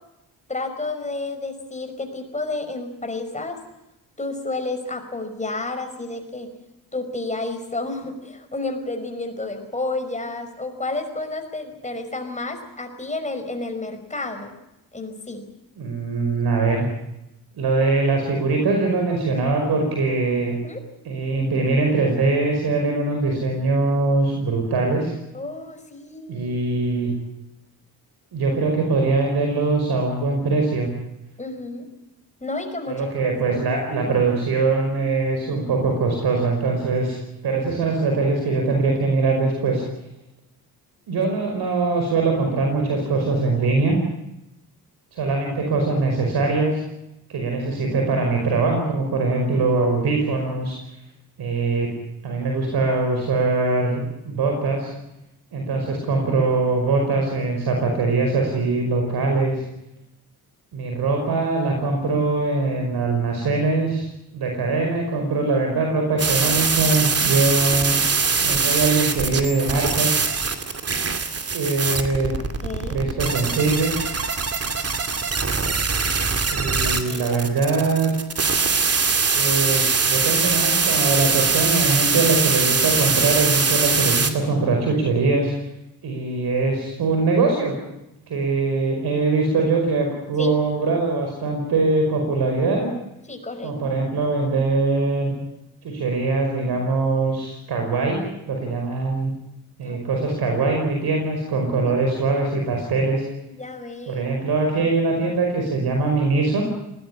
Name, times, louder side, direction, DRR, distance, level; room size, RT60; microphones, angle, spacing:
voice 1, 0.5-3.6 4.2-6.5 6.9-14.5 14.9-15.4 20.6-20.8 25.3-26.5 31.4-31.9 32.4-33.6 72.6-73.0 76.8-77.5 90.4-90.6 93.3-93.8 99.8-100.0 101.8-101.9 103.6-104.3, left 2 dB, 15° left, 5 dB, 5.3 m, -31 dB
voice 2, 15.8-16.9 17.5-20.5 21.1-25.1 26.3-27.1 28.3-30.9 32.9-37.2 37.4-39.8 41.1-44.0 45.1-46.8 47.3-50.8 51.4-51.9 52.2-54.9 55.5-59.6 60.7-68.0 68.4-70.2 71.5-72.3 72.9-74.0 76.5-78.1 79.3-85.5 86.0-87.7 88.3-92.9 93.6-95.4 95.8-99.3 99.8-103.2 104.1-106.6, right 3 dB, 65° right, 2 dB, 5.3 m, -22 dB
sound 1, 66.2-84.3, right 5 dB, 35° right, 2.5 m, -22 dB
20.0 x 18.0 x 9.9 m, 0.90 s
cardioid pair, 80°, 41 cm